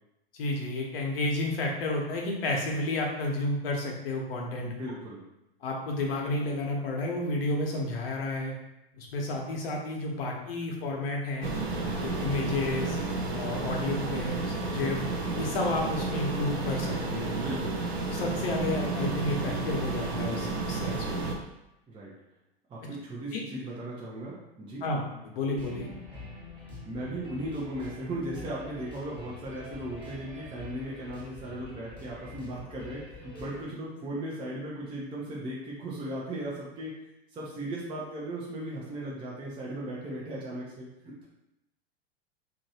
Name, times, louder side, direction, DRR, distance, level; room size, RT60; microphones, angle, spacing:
voice 1, 0.3-4.7 5.6-8.5 9.0-11.5 12.0-13.0 13.3-15.0 15.3-17.3 18.1-21.2 23.3-23.4 24.8-25.0 25.3-25.9, left 2 dB, 65° left, 0 dB, 0.9 m, -31 dB
voice 2, 4.6-5.2 17.3-17.8 21.9-22.1 22.7-24.8 26.8-37.0 37.3-41.3, right 1 dB, 15° right, -5 dB, 0.6 m, -37 dB
sound 1, 11.4-21.4, right 3 dB, 90° right, 0.6 m, -31 dB
sound 2, 25.5-33.7, left 2 dB, 5° left, 1.0 m, -46 dB
3.0 x 2.6 x 2.7 m, 0.89 s
hypercardioid pair, 100°, 31 cm